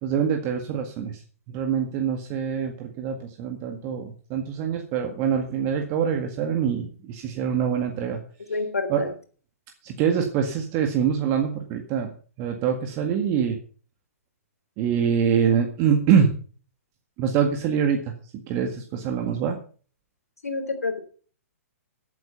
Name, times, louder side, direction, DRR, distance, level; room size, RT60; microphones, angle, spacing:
voice 1, 0.0-1.2 1.5-8.2 8.9-9.1 9.8-12.1 12.4-13.6 14.8-16.3 17.2-19.6, right 7 dB, 35° right, 5 dB, 1.9 m, -24 dB
voice 2, 8.5-9.1 20.4-21.0, left 3 dB, 75° left, 7 dB, 3.5 m, -28 dB
15.0 x 9.0 x 5.6 m, 0.42 s
figure-of-eight pair, 120°, 8 cm